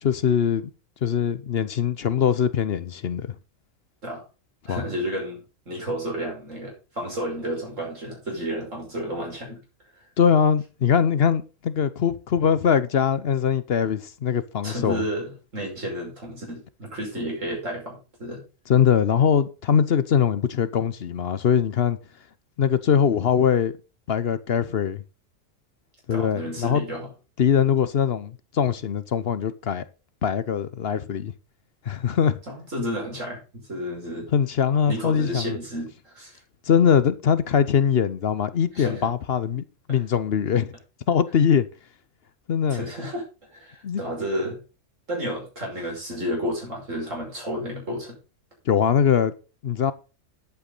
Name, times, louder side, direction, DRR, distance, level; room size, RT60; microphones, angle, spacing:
voice 1, 0.0-0.7 1.0-3.3 4.7-4.8 10.2-15.0 18.7-22.0 22.6-23.7 24.1-25.0 26.1-26.8 27.4-29.8 30.2-31.3 31.9-32.4 34.3-35.6 36.7-40.7 41.1-41.7 42.5-42.8 43.8-44.0 48.7-49.3 49.6-49.9, left 7 dB, 55° left, 0.9 m, -22 dB
voice 2, 4.7-9.6 14.6-18.4 26.1-27.1 32.5-34.3 34.9-36.4 38.7-39.1 39.9-40.0 42.7-43.2 43.5-44.6 45.1-48.2, equal, 70° right, 6.1 m, -31 dB
10.5 x 8.5 x 4.0 m
omnidirectional pair, 1.4 m